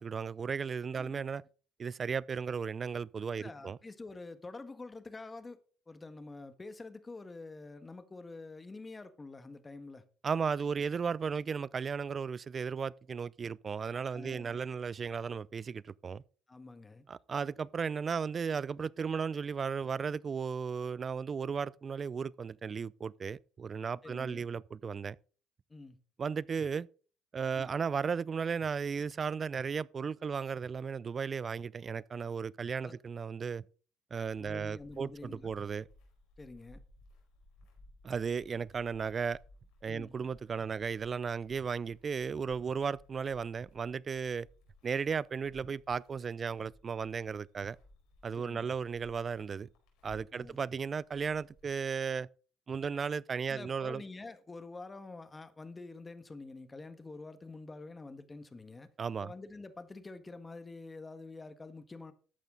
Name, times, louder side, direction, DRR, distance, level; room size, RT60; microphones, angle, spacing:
voice 1, 0.0-1.4 1.8-3.8 10.2-16.2 17.1-25.2 26.2-26.9 27.3-33.6 34.1-35.9 38.0-39.4 39.8-44.5 44.8-47.8 48.2-49.7 50.0-52.3 52.7-54.0 59.0-59.3, right 6 dB, 40° right, 0.5 m, -35 dB
voice 2, 3.4-5.6 5.9-10.0 14.1-14.6 16.5-17.0 24.0-24.5 25.7-26.0 27.5-27.7 32.8-33.0 34.4-35.5 36.4-36.8 39.9-40.1 48.3-48.7 50.3-50.6 53.5-58.9 59.2-62.1, left 3 dB, 20° left, 1.6 m, -47 dB
sound 1, 34.2-52.0, left 1 dB, 80° left, 4.7 m, -61 dB
13.0 x 9.2 x 3.9 m
supercardioid pair, 80°, 0 cm